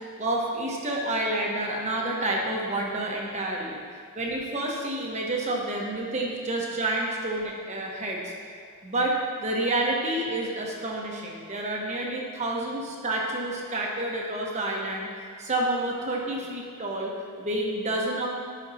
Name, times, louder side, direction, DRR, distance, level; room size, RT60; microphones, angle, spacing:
voice 1, 0.2-3.8 4.1-8.3 8.8-15.1 15.4-18.3, right 1 dB, 30° right, -2 dB, 1.1 m, -29 dB
12.5 x 5.7 x 2.8 m, 2.1 s
head